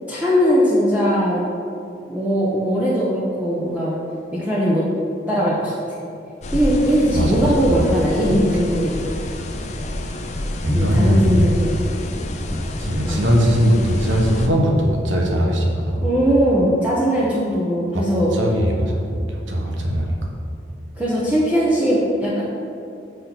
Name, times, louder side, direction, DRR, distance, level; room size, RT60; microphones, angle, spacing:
voice 1, 0.1-1.4 2.1-4.0 4.3-4.8 5.3-5.7 6.5-9.0 10.7-11.8 13.0-13.2 16.0-18.3 21.0-22.4, equal, 10° right, -7 dB, 1.0 m, -19 dB
sound 1, 6.4-14.5, left 1 dB, 35° left, 0.6 m, -28 dB
voice 2, 7.1-7.5 10.6-11.5 12.8-16.1 17.9-18.0 18.3-19.0 19.3-20.1, equal, 85° right, 0 dB, 1.3 m, -19 dB
7.0 x 6.5 x 6.0 m, 2.6 s
head